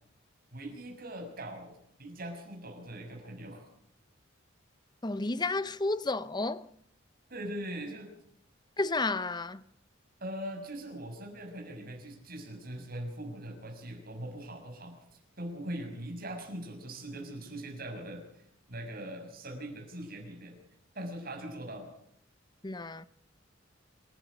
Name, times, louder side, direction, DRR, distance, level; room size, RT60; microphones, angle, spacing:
voice 1, 0.5-3.6 7.3-8.1 10.2-14.9 15.4-20.6 20.9-21.9, right 1 dB, 45° right, 6.4 m, -41 dB
voice 2, 5.0-6.7 8.8-9.6 22.6-23.1, left 3 dB, 20° left, 0.7 m, -31 dB
27.5 x 11.5 x 8.2 m
head